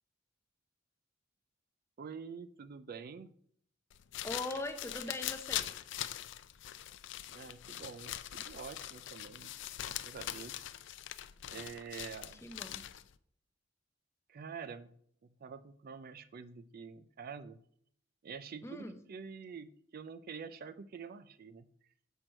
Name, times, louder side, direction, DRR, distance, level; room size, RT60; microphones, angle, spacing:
voice 1, 2.0-3.3 7.3-9.5 9.8-10.6 11.5-12.5 14.3-14.9 15.4-17.6 18.2-21.7, right 6 dB, 50° right, 14 dB, 0.4 m, -47 dB
sound 1, 3.9-13.1, left 12 dB, 65° left, 0.4 m, -42 dB
voice 2, 4.2-5.7 12.4-12.8 18.6-19.0, left 2 dB, 15° left, 8 dB, 0.6 m, -41 dB
6.0 x 4.6 x 6.4 m, 0.63 s
head